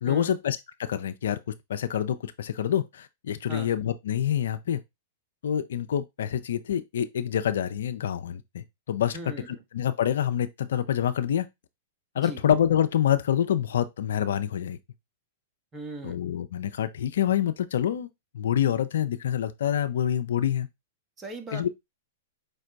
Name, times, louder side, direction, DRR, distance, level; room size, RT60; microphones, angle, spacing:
voice 1, 0.0-4.8 5.4-9.2 9.5-11.5 12.1-14.8 16.0-18.1 18.3-20.7 21.5-21.7, left 10 dB, 70° left, 0.5 m, -27 dB
voice 2, 9.1-9.5 12.2-12.4 15.7-16.1 21.2-21.7, right 2 dB, 20° right, 1.1 m, -38 dB
5.2 x 2.1 x 3.8 m
hypercardioid pair, 115°, 0 cm